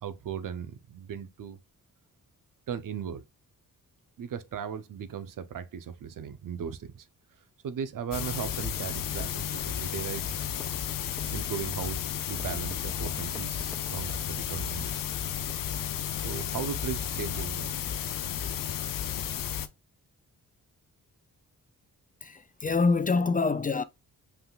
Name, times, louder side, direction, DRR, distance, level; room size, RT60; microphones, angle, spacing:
voice 1, 0.0-1.6 2.7-3.2 4.2-7.1 7.6-10.4 11.3-12.0 12.3-15.0 16.2-17.7, right 8 dB, 65° right, 0.7 m, -37 dB
sound 1, 8.1-19.7, left 9 dB, 70° left, 0.6 m, -33 dB
Typing, 8.6-10.0 10.3-14.3, left 2 dB, 5° left, 1.9 m, -49 dB
voice 2, 22.2-23.8, left 4 dB, 25° left, 0.4 m, -26 dB
5.7 x 3.6 x 2.4 m
cardioid pair, 95°, 34 cm